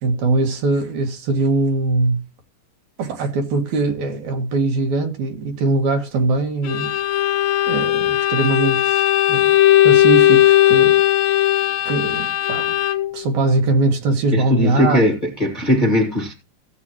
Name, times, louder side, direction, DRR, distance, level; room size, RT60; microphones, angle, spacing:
voice 1, 0.0-2.2 3.0-6.9 7.7-9.6 9.8-11.0 11.9-12.7 13.1-15.0, right 3 dB, 70° right, 2.9 m, -21 dB
Bowed string instrument, 6.6-13.2, left 13 dB, 70° left, 1.7 m, -17 dB
voice 2, 14.3-16.3, left 1 dB, 20° left, 1.5 m, -19 dB
15.5 x 8.2 x 3.0 m
omnidirectional pair, 3.6 m